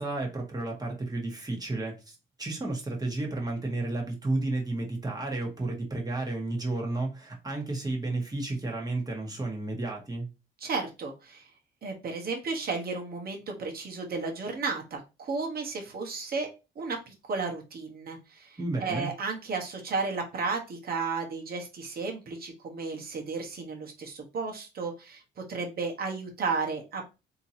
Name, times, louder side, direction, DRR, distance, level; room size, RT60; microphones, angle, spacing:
voice 1, 0.0-10.3 18.6-19.1, right 2 dB, 20° right, 1.5 m, -32 dB
voice 2, 10.6-11.5 11.8-16.5 16.7-27.0, right 4 dB, 50° right, 1.2 m, -33 dB
3.7 x 2.9 x 2.8 m
cardioid pair, 90°, 20 cm